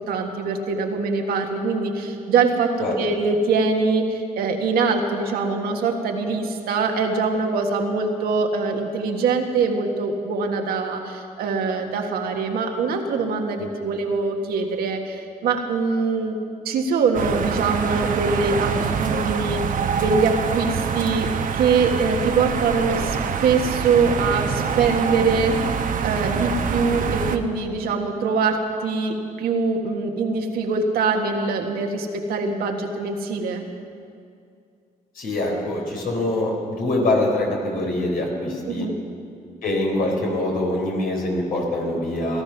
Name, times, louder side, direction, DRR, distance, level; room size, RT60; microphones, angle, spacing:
voice 1, 0.0-16.4 16.6-23.2 23.4-25.8 26.0-33.6 38.7-38.9, right 4 dB, 85° right, 3 dB, 1.6 m, -23 dB
voice 2, 13.6-13.9 35.1-38.9 39.6-42.4, left 1 dB, 70° left, 0 dB, 4.3 m, -24 dB
sound 1, 17.1-27.4, right 6 dB, 60° right, 1.0 m, -25 dB
18.0 x 12.5 x 6.0 m, 2.4 s
cardioid pair, 70°, 15 cm